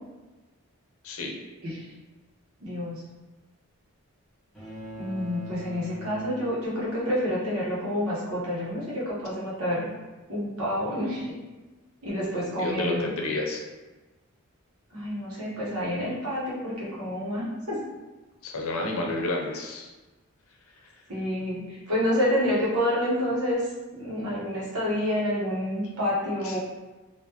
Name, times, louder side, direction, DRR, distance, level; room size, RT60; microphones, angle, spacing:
voice 1, 1.0-1.4 12.6-13.6 18.4-19.9 20.8-20.9 26.4-26.6, left 2 dB, 80° left, 0 dB, 0.6 m, -30 dB
voice 2, 2.6-3.0 5.0-9.9 10.3-11.4 12.0-13.1 14.9-17.8 21.1-26.6, equal, 85° right, -6 dB, 1.1 m, -28 dB
sound 1, 4.5-7.1, right 1 dB, ahead, 1.1 m, -42 dB
3.6 x 2.5 x 2.9 m, 1.2 s
head